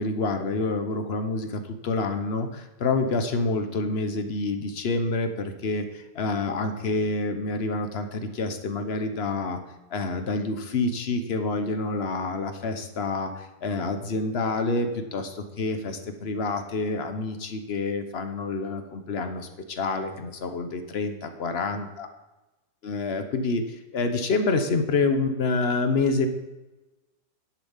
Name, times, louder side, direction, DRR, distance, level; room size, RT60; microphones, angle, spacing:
voice 1, 0.0-9.6 9.9-22.1 22.8-26.3, left 3 dB, 45° left, 7 dB, 0.9 m, -27 dB
10.5 x 7.3 x 5.6 m, 1.1 s
omnidirectional pair, 2.0 m